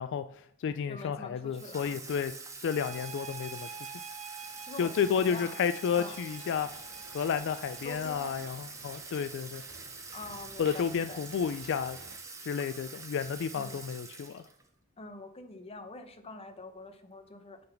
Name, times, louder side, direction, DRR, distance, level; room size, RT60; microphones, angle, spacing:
voice 1, 0.0-2.3 2.6-3.9 4.8-6.7 7.1-9.6 10.6-12.0 12.4-14.4, left 7 dB, 60° left, 11 dB, 0.3 m, -31 dB
voice 2, 0.9-2.0 4.6-5.6 5.9-6.3 7.8-8.4 10.1-11.3 13.5-13.8 15.0-17.6, left 2 dB, 30° left, 7 dB, 0.8 m, -45 dB
Water tap faucet / Sink (filling or washing), 1.5-14.7, right 4 dB, 15° right, 0.8 m, -46 dB
sound 1, 2.7-7.9, right 7 dB, 30° right, 0.5 m, -48 dB
sound 2, 6.3-12.2, right 4 dB, 55° right, 0.8 m, -54 dB
8.6 x 4.0 x 5.7 m, 0.68 s
head